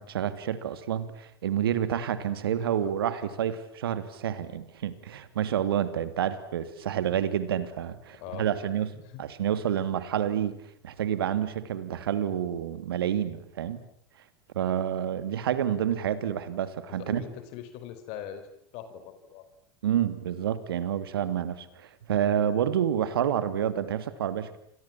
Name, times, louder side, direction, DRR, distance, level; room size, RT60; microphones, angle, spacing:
voice 1, 0.0-8.9 9.2-10.6 10.8-13.9 14.5-17.2 19.8-24.6, right 9 dB, 75° right, 2.7 m, -29 dB
voice 2, 8.2-8.7 9.0-9.2 17.0-18.4 18.7-19.4, left 10 dB, 55° left, 4.8 m, -41 dB
29.5 x 25.5 x 7.4 m
hypercardioid pair, 85°, 12 cm